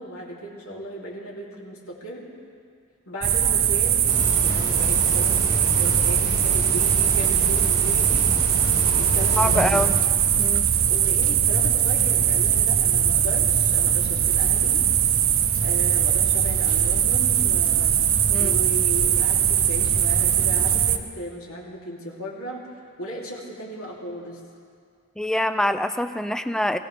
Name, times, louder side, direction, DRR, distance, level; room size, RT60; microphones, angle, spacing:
voice 1, 0.0-2.3 3.1-4.1 4.4-8.3 8.9-9.9 10.9-14.8 15.6-18.0 18.4-22.6 23.0-24.4, equal, 80° left, -4 dB, 3.0 m, -36 dB
sound 1, 3.2-21.0, right 9 dB, 65° right, 0.8 m, -21 dB
sound 2, 4.1-9.8, left 1 dB, 40° left, 3.9 m, -30 dB
voice 2, 9.4-10.0 10.4-10.7 18.3-18.5 25.2-26.8, left 1 dB, 5° left, 10 dB, 0.4 m, -25 dB
23.5 x 16.5 x 3.4 m, 2.2 s
head